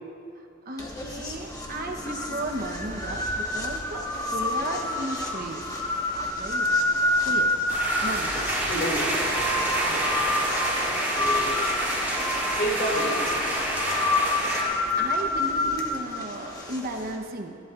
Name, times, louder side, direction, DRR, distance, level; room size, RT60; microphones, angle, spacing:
voice 1, 0.3-5.7 6.3-6.7 7.2-7.5 8.0-8.4 9.9-10.1 14.4-14.5 15.0-17.6, right 1 dB, 50° right, 3 dB, 1.0 m, -35 dB
sound 1, 0.8-17.2, left 2 dB, 20° left, 1.4 m, -28 dB
sound 2, 7.7-14.6, right 1 dB, 10° right, 3.9 m, -27 dB
voice 2, 8.7-10.1 10.8-11.5 12.5-13.6, right 1 dB, 50° left, -2 dB, 2.7 m, -31 dB
27.5 x 11.5 x 2.5 m, 2.4 s
head